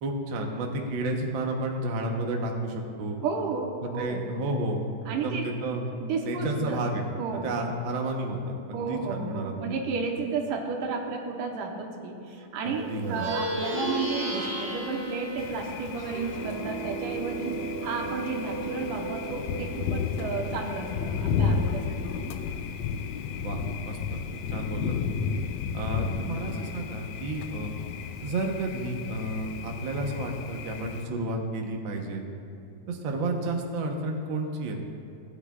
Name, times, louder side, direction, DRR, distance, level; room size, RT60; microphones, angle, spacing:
voice 1, 0.0-3.2 3.8-4.8 5.1-5.9 6.2-7.1 7.4-8.4 8.7-9.7 12.6-13.3 23.4-23.6 23.8-24.2 24.5-25.2 25.7-27.7 28.2-32.3 32.9-34.8, right 2 dB, 70° right, 1 dB, 1.2 m, -31 dB
voice 2, 3.2-4.2 5.1-5.5 6.0-6.8 7.2-7.5 8.7-17.5 17.8-22.3, right 4 dB, 85° right, 1 dB, 2.6 m, -32 dB
Plucked string instrument, 13.0-22.7, right 2 dB, 45° right, 1.7 m, -35 dB
Thunder, 15.4-31.1, left 6 dB, 85° left, 1.4 m, -33 dB
17.5 x 9.7 x 2.4 m, 2.7 s
omnidirectional pair, 3.6 m